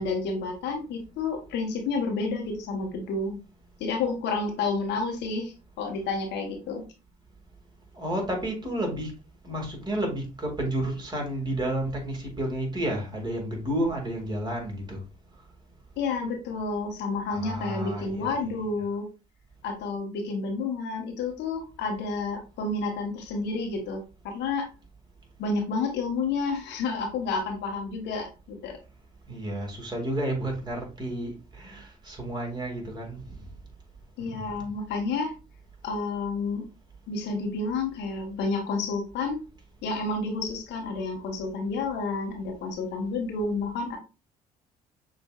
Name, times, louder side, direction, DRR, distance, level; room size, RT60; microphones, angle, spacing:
voice 1, 0.0-3.4 3.8-6.8 16.0-19.1 19.6-24.7 25.4-28.8 34.2-35.3 35.8-36.7 37.1-39.4 39.8-44.0, left 3 dB, 70° left, 2 dB, 1.1 m, -30 dB
voice 2, 8.0-9.1 9.4-15.0 17.3-18.5 29.3-33.2 34.2-34.6, right 1 dB, 25° right, 1 dB, 2.1 m, -31 dB
6.4 x 2.6 x 2.3 m, 0.32 s
hypercardioid pair, 60°, 19 cm